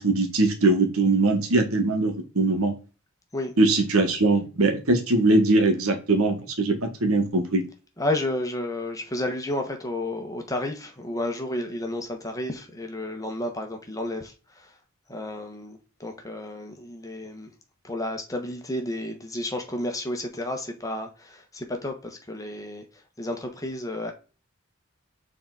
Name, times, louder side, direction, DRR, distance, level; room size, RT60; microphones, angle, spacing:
voice 1, 0.0-2.7 3.6-7.6, right 2 dB, 85° right, 1.6 m, -21 dB
voice 2, 8.0-14.7 15.1-17.5 17.8-22.8 23.2-24.1, left 1 dB, 15° left, 1.2 m, -31 dB
6.9 x 3.8 x 4.0 m
head